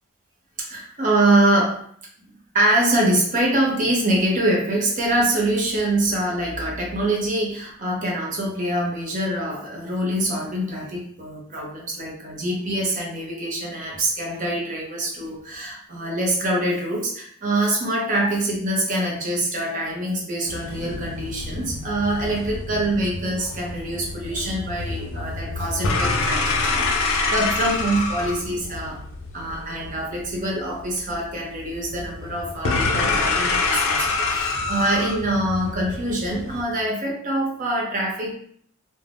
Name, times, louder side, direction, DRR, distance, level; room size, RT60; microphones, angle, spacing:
voice 1, 0.6-1.8 2.5-29.0 29.3-38.3, right 1 dB, 35° right, -2 dB, 0.6 m, -24 dB
sound 1, 20.5-36.6, left 3 dB, 60° left, 0.4 m, -27 dB
2.4 x 2.1 x 3.4 m, 0.62 s
head